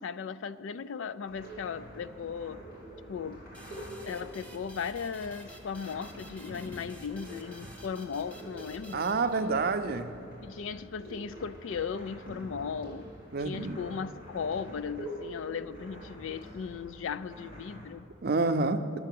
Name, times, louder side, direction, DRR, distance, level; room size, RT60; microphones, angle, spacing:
voice 1, 0.0-2.6 3.1-3.4 4.1-9.0 10.4-13.1 13.4-18.1, left 6 dB, 75° left, 0.4 m, -37 dB
sound 1, 1.3-17.9, right 1 dB, 45° left, 2.8 m, -46 dB
sound 2, 3.5-9.9, right 1 dB, 5° left, 1.0 m, -52 dB
voice 2, 8.9-10.1 13.3-13.8 18.2-19.0, right 3 dB, 50° right, 0.6 m, -28 dB
11.5 x 6.4 x 7.6 m
head